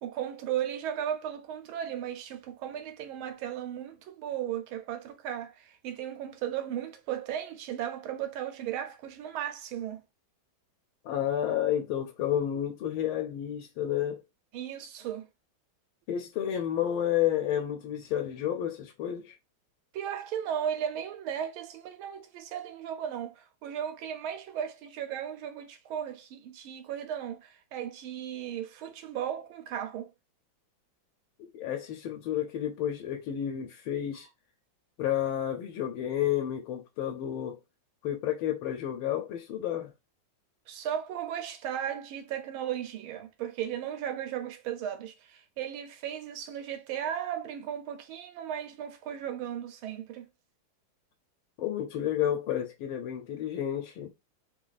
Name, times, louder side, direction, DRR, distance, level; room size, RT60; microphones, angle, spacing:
voice 1, 0.0-10.0 14.5-15.3 19.9-30.1 40.7-50.2, right 10 dB, 85° right, 1.6 m, -36 dB
voice 2, 11.0-14.2 16.1-19.4 31.4-34.3 35.0-37.6 38.0-39.9 51.6-54.1, left 11 dB, 85° left, 1.5 m, -31 dB
3.8 x 2.5 x 3.9 m
omnidirectional pair, 2.2 m